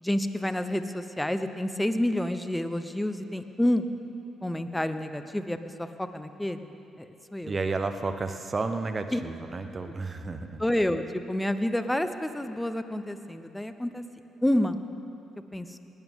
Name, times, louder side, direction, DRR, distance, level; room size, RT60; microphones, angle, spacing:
voice 1, 0.0-3.8 4.4-6.7 7.0-7.5 9.1-9.2 10.6-14.0 14.4-14.8 15.5-15.8, left 1 dB, 10° left, 10 dB, 0.9 m, -29 dB
voice 2, 7.5-10.6, right 3 dB, 35° right, 8 dB, 1.0 m, -32 dB
19.0 x 12.5 x 3.7 m, 3.0 s
hypercardioid pair, 50°, 0 cm